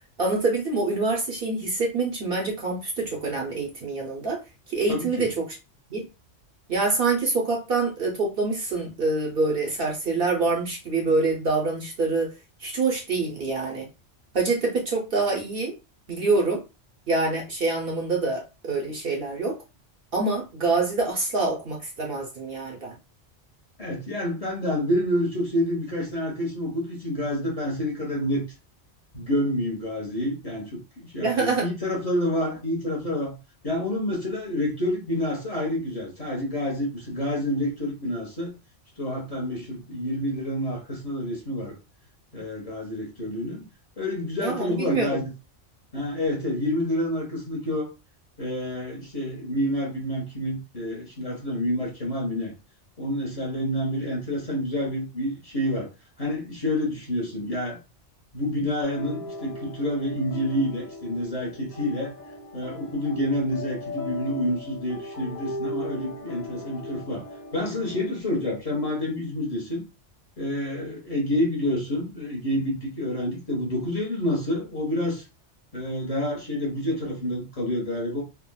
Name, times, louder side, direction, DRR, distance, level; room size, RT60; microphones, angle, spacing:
voice 1, 0.2-4.4 4.7-5.6 5.9-6.0 6.7-12.3 12.6-13.9 14.3-15.8 16.1-16.6 17.1-19.6 20.1-22.9 31.2-31.7 44.4-45.2, right 3 dB, 55° right, 0.8 m, -26 dB
voice 2, 4.9-5.3 23.8-28.4 29.1-30.8 31.1-33.3 33.6-38.5 39.0-41.8 42.3-43.7 44.0-45.3 45.9-47.9 48.4-52.5 53.0-55.9 56.2-57.8 58.3-62.1 62.5-67.2 67.5-69.8 70.4-75.2 75.7-78.2, left 1 dB, 35° left, 0.9 m, -28 dB
s piano loop, 58.8-68.2, left 2 dB, 55° left, 1.4 m, -38 dB
3.6 x 2.1 x 2.2 m
omnidirectional pair, 1.3 m